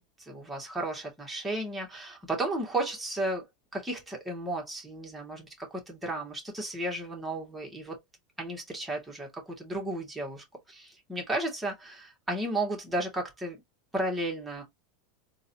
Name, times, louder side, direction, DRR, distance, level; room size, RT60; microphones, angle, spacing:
voice 1, 0.2-3.5 3.7-8.0 8.4-13.6 13.9-14.6, right 1 dB, 10° right, 2.1 m, -34 dB
3.8 x 2.7 x 2.9 m
hypercardioid pair, 100°, 0 cm